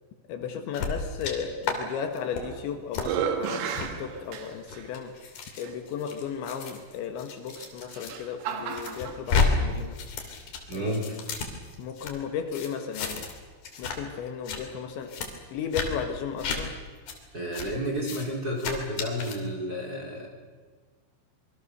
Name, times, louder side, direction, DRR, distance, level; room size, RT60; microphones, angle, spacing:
voice 1, 0.3-5.3 5.6-10.0 10.7-11.2 11.8-13.3 13.8-15.1 15.5-16.8, left 7 dB, 70° left, 6 dB, 3.5 m, -35 dB
sound 1, 0.7-1.3 1.6-1.8 2.1-2.4 2.9-3.1 3.7-3.9 4.5-8.1 8.5-9.5 9.8-12.1 12.5-13.4 13.6-14.0 14.3-14.6 15.1-15.3 15.7-15.9 16.4-16.6 17.1-17.2 17.5-17.7 18.0-18.3 18.6-19.4, left 5 dB, 55° left, 4.6 m, -32 dB
sound 2, 2.2-2.6 3.0-4.9 5.6-5.7 7.5-9.2, right 8 dB, 80° right, 4.3 m, -33 dB
voice 2, 10.7-11.2 17.3-20.3, equal, 20° right, 0 dB, 4.0 m, -31 dB
26.5 x 23.5 x 6.7 m, 1.5 s
omnidirectional pair, 5.7 m